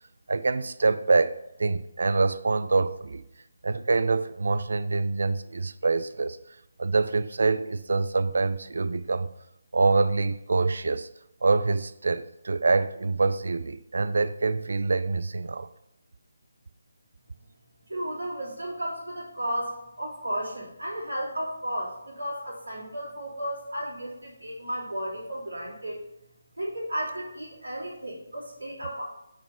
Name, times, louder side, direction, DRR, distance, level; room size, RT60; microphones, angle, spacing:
voice 1, 0.3-1.3 1.6-3.2 3.6-6.4 6.8-9.3 9.7-11.1 11.4-15.7, right 3 dB, 55° right, 0.4 m, -25 dB
voice 2, 17.9-26.0 26.6-29.0, equal, 75° right, 2.9 m, -34 dB
6.5 x 4.1 x 5.7 m
figure-of-eight pair, 150°, 0 cm